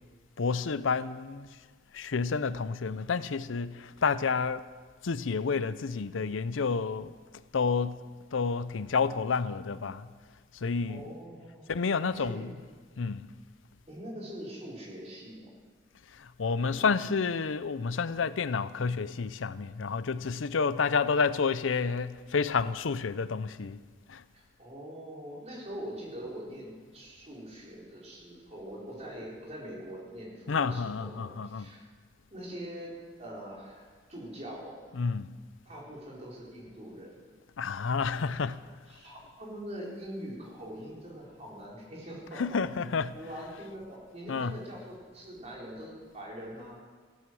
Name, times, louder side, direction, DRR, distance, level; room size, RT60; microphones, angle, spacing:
voice 1, 0.4-1.5 1.9-4.6 5.0-7.1 7.5-8.0 8.3-10.1 10.6-11.0 11.7-12.5 13.0-13.3 16.2-23.8 24.1-24.2 30.5-31.7 35.0-35.3 37.6-38.6 42.4-43.1 44.3-44.5, left 5 dB, 85° left, 0.6 m, -29 dB
voice 2, 10.9-11.7 12.2-12.4 13.9-15.5 16.4-17.1 24.3-31.9 32.3-32.9 33.2-34.7 35.6-37.1 38.9-42.4 43.1-46.8, equal, 35° right, 4.8 m, -43 dB
15.5 x 14.5 x 6.3 m
head